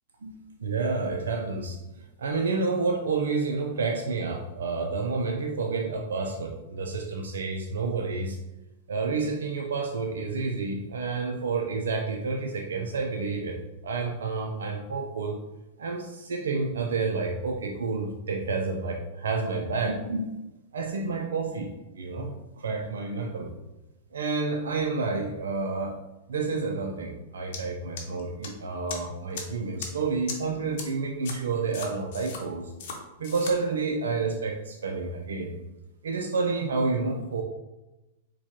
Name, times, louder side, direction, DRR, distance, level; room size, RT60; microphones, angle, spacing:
voice 1, 0.2-1.8 2.2-8.4 8.9-13.6 13.8-15.4 15.8-20.3 20.7-23.5 24.1-26.0 26.3-32.7 33.2-35.6 36.0-37.4, right 4 dB, 80° right, 2 dB, 0.4 m, -29 dB
sound 1, 27.5-27.6 28.0-28.5 28.9-29.0 29.3-29.4 29.8-29.9 30.3-30.4 30.8-30.9 31.2-31.3 31.7-32.4 32.8-33.0 33.2-33.5, left 6 dB, 60° left, 0.7 m, -36 dB
4.4 x 2.2 x 2.9 m, 1.0 s
hypercardioid pair, 110°, 0 cm